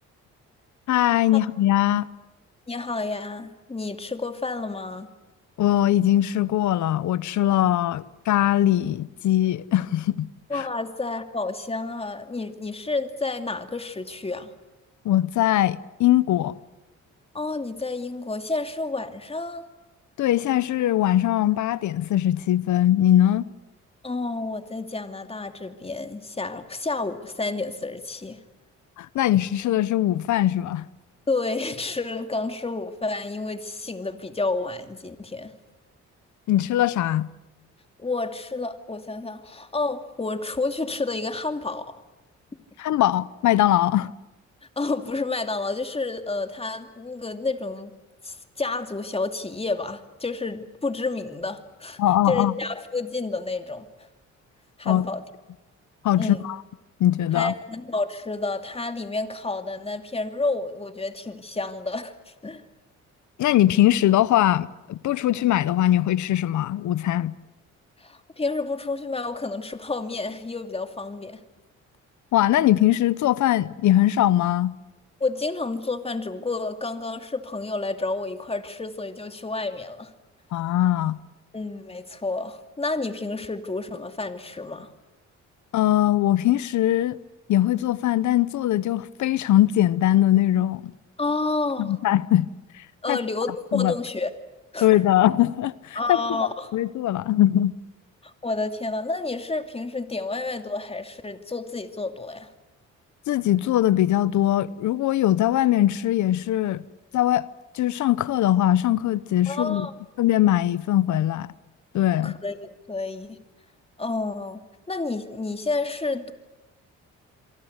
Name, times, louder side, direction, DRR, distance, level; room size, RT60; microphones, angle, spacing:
voice 1, 0.9-2.1 5.6-10.3 10.5-10.7 15.0-16.6 20.2-23.5 29.0-30.8 36.5-37.3 42.8-44.1 52.0-52.5 54.8-55.0 56.0-56.6 57.0-57.5 63.4-67.3 72.3-74.8 80.5-81.2 85.7-87.2 87.5-90.9 91.8-92.5 93.1-93.2 93.7-93.9 94.8-96.4 96.7-97.8 103.3-106.8 107.1-107.4 107.7-109.9 110.2-111.5 111.9-112.4, left 13 dB, 75° left, 0.9 m, -21 dB
voice 2, 2.7-5.1 10.5-14.5 17.3-19.7 24.0-28.4 31.3-35.5 38.0-41.9 44.8-47.9 48.2-52.0 52.3-53.9 54.8-55.2 56.2-56.5 57.3-62.6 68.0-71.4 75.2-80.1 81.5-84.9 91.2-92.0 93.0-94.3 94.7-95.0 95.9-96.8 98.2-102.5 109.5-109.9 112.2-113.4 114.0-114.6 114.9-116.3, left 3 dB, 20° left, 2.5 m, -30 dB
27.5 x 23.5 x 8.1 m
cardioid pair, 90°, 30 cm